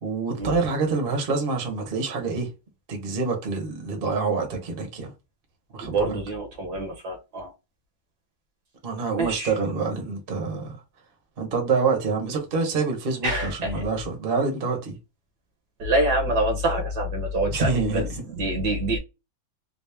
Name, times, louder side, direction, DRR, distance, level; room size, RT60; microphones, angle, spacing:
voice 1, 0.0-2.5 2.9-5.1 5.7-6.2 8.8-10.8 11.4-15.0 17.5-18.2, right 4 dB, 35° right, 0.9 m, -26 dB
voice 2, 5.8-7.5 9.2-9.5 13.2-13.7 15.8-19.0, right 1 dB, 60° right, 1.3 m, -26 dB
4.1 x 2.0 x 3.3 m
omnidirectional pair, 2.3 m